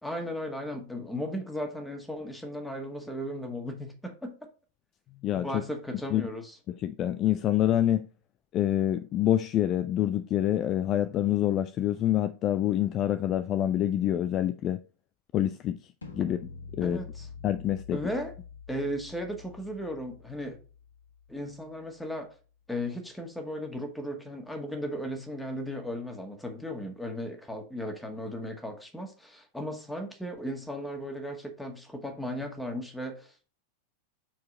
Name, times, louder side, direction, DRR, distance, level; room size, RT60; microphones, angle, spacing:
voice 1, 0.0-4.4 5.4-6.6 16.8-17.3 17.9-18.3 18.7-20.6 21.3-22.3 22.7-33.5, equal, 5° left, 1.8 m, -36 dB
voice 2, 5.2-5.6 6.1-6.2 6.8-8.1 8.5-14.8 15.3-15.8 16.1-16.4 16.8-17.0 17.4-18.0, left 12 dB, 35° left, 0.4 m, -26 dB
sound 1, 16.0-22.0, left 5 dB, 70° left, 1.5 m, -47 dB
7.3 x 4.7 x 4.2 m
figure-of-eight pair, 90°, 0 cm